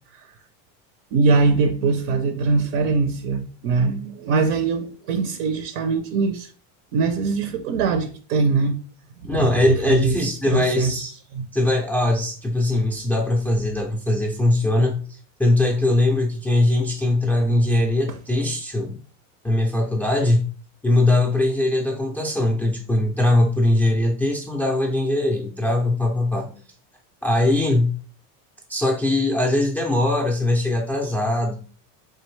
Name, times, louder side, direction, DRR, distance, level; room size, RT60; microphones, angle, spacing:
voice 1, 1.1-6.5 6.9-8.8 9.3-11.0 11.3-11.5 18.1-18.2, right 4 dB, 75° right, 0.6 m, -22 dB
voice 2, 9.2-11.1 11.5-15.0 15.4-19.0 19.4-20.5 20.8-26.5 27.2-27.9 28.7-31.6, left 1 dB, 5° left, 0.3 m, -21 dB
3.9 x 3.3 x 3.1 m
supercardioid pair, 150°, 39 cm